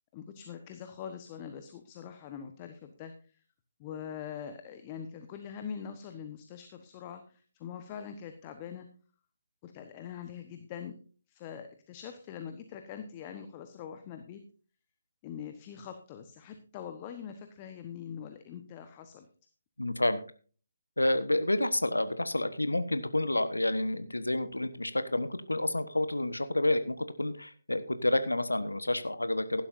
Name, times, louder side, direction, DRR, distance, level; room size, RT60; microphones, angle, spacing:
voice 1, 0.1-3.4 3.8-8.9 9.6-10.9 11.3-14.4 15.2-19.3, left 8 dB, 25° left, 8 dB, 1.1 m, -43 dB
voice 2, 19.8-20.2 21.0-29.6, left 1 dB, 85° left, 12 dB, 1.2 m, -29 dB
16.0 x 11.5 x 2.6 m, 0.39 s
figure-of-eight pair, 145°, 0 cm